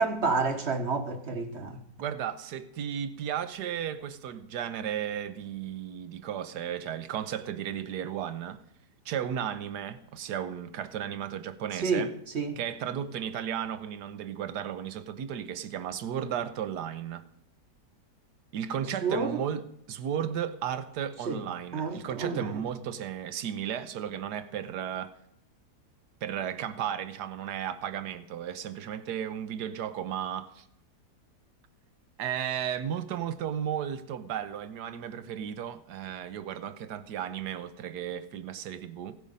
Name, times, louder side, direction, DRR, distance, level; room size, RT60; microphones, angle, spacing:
voice 1, 0.0-1.8 11.8-12.1 12.3-12.6 19.0-19.4 21.2-21.4 21.7-22.5, right 4 dB, 45° right, 1.4 m, -29 dB
voice 2, 2.0-8.6 9.0-12.1 12.6-17.2 18.5-25.1 26.2-30.6 32.2-39.2, right 9 dB, 75° right, 1.4 m, -34 dB
16.5 x 11.5 x 5.4 m
omnidirectional pair, 1.8 m